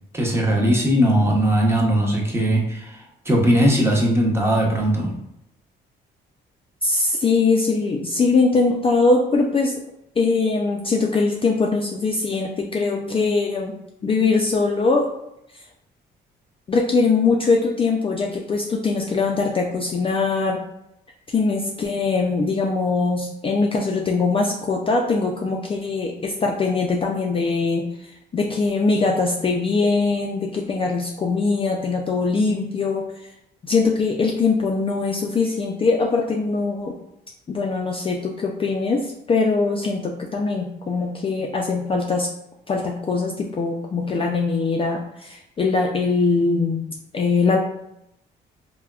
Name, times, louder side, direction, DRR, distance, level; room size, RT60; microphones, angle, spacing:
voice 1, 0.1-5.2, equal, 10° right, -2 dB, 0.7 m, -19 dB
voice 2, 6.8-9.8 10.2-13.7 14.0-15.1 15.5-15.6 16.7-20.6 21.3-33.0 33.6-36.9 37.5-42.3 42.7-46.8 47.1-47.6, left 4 dB, 30° left, 0 dB, 0.3 m, -22 dB
3.4 x 2.2 x 2.3 m, 0.80 s
cardioid pair, 90°, 20 cm